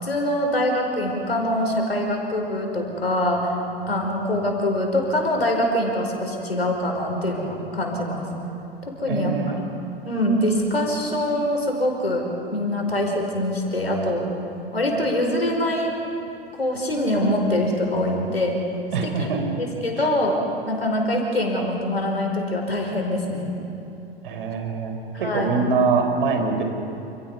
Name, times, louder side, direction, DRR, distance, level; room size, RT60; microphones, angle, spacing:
voice 1, 0.0-3.6 3.9-8.3 8.9-9.4 10.0-14.3 14.7-15.9 16.6-18.6 19.2-19.3 19.6-20.4 20.6-23.6 25.1-25.5, left 1 dB, 85° left, 1 dB, 4.9 m, -24 dB
voice 2, 9.1-9.7 18.9-19.4 20.0-20.1 24.2-26.6, right 4 dB, 60° right, 5 dB, 4.2 m, -24 dB
28.5 x 28.0 x 5.6 m, 2.9 s
figure-of-eight pair, 90°, 30 cm